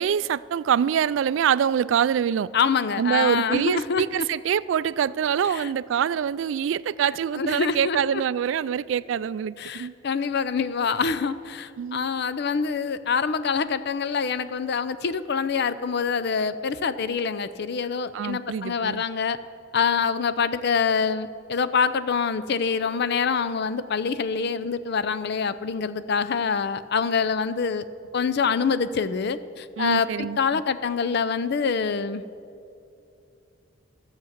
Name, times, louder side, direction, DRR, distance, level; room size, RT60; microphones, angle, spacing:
voice 1, 0.0-2.5 3.0-9.9 11.8-12.1 18.1-19.0 29.8-30.6, right 8 dB, 75° right, 0.3 m, -25 dB
voice 2, 2.5-4.3 5.5-5.7 7.4-8.2 9.6-19.4 19.7-27.8 28.1-32.2, left 5 dB, 60° left, 0.5 m, -25 dB
13.5 x 7.4 x 7.3 m
head